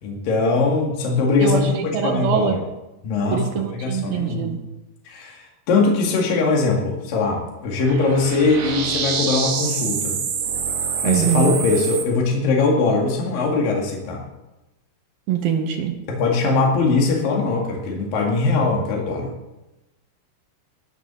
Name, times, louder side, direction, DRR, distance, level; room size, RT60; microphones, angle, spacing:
voice 1, 0.0-2.6 3.0-4.6 5.1-10.2 11.0-14.2 16.1-19.3, left 3 dB, 70° left, -1 dB, 3.8 m, -21 dB
voice 2, 1.4-2.6 3.3-4.6 11.0-11.5 15.3-15.9, right 9 dB, 80° right, 4 dB, 3.1 m, -23 dB
sound 1, 7.7-12.0, right 6 dB, 65° right, 3.3 m, -26 dB
20.5 x 7.2 x 6.9 m, 0.99 s
omnidirectional pair, 4.2 m